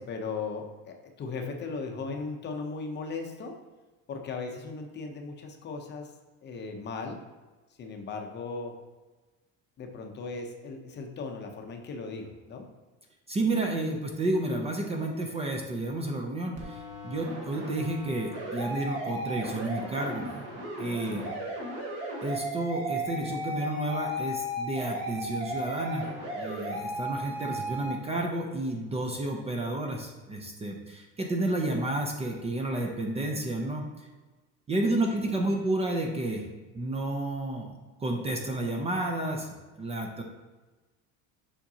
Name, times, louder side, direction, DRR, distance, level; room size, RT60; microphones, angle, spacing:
voice 1, 0.0-3.6 4.1-6.1 6.4-7.2 7.8-8.7 9.8-12.7 21.1-21.4 35.1-35.3, left 4 dB, 35° left, 3 dB, 0.7 m, -37 dB
voice 2, 13.3-20.3 20.8-21.2 22.2-34.1 34.7-36.5 36.7-37.7 38.0-39.5 39.8-40.2, right 2 dB, 20° right, 1 dB, 0.5 m, -31 dB
sound 1, 16.6-27.9, equal, 45° right, 1.5 m, -35 dB
7.3 x 5.1 x 2.8 m, 1.2 s
cardioid pair, 155°, 33 cm